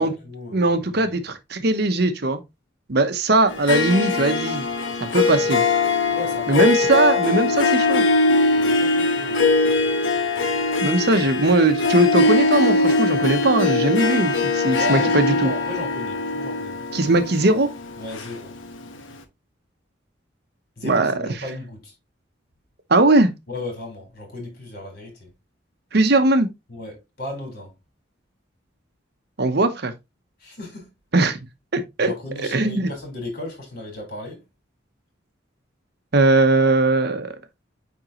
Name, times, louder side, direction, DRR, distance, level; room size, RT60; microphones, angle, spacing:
voice 1, 0.0-1.1 6.1-6.6 8.6-9.9 14.7-16.8 18.0-18.6 20.8-21.9 23.5-25.3 26.7-27.7 30.4-30.9 32.0-34.4, left 1 dB, 50° left, 3.9 m, -35 dB
voice 2, 0.5-2.4 2.9-4.7 5.0-5.6 6.5-8.0 10.8-15.5 16.9-17.7 20.8-21.3 22.9-23.3 25.9-26.5 29.4-29.9 31.1-31.4 31.7-32.1 32.5-32.9 36.1-37.3, right 2 dB, 55° right, 0.8 m, -19 dB
Harp, 3.5-18.8, left 3 dB, 85° left, 1.1 m, -21 dB
8.9 x 3.6 x 2.9 m
head